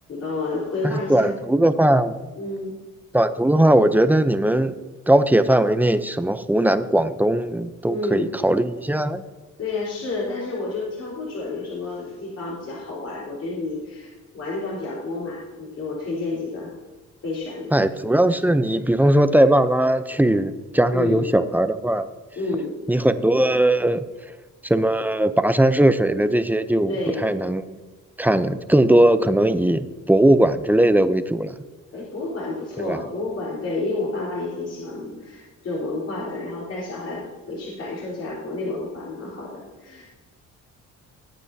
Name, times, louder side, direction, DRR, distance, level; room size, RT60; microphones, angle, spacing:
voice 1, 0.1-1.3 2.4-2.7 7.9-8.3 9.6-16.7 17.2-17.8 20.9-21.2 22.4-22.7 26.9-27.3 31.9-40.2, left 2 dB, 50° left, -6 dB, 4.2 m, -30 dB
voice 2, 0.8-2.2 3.1-4.7 5.1-9.2 17.7-22.1 22.9-24.0 24.6-27.6 28.2-31.5 32.8-33.0, right 1 dB, 5° right, 11 dB, 0.6 m, -19 dB
19.5 x 9.0 x 2.8 m, 1.2 s
cardioid pair, 105°, 33 cm